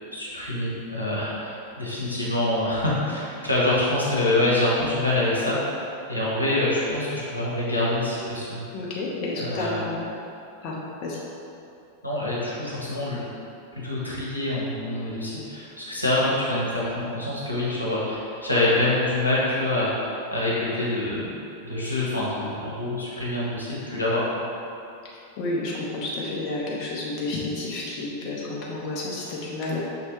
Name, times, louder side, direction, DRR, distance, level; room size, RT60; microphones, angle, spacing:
voice 1, 0.1-8.7 9.4-9.9 12.0-13.3 13.7-21.3 21.6-24.2, left 1 dB, 85° left, -7 dB, 1.0 m, -26 dB
voice 2, 8.7-9.9 10.6-10.7 11.0-11.2 25.1-29.8, left 2 dB, 40° left, -5 dB, 0.7 m, -30 dB
5.7 x 3.2 x 3.0 m, 2.7 s
figure-of-eight pair, 90°, 0 cm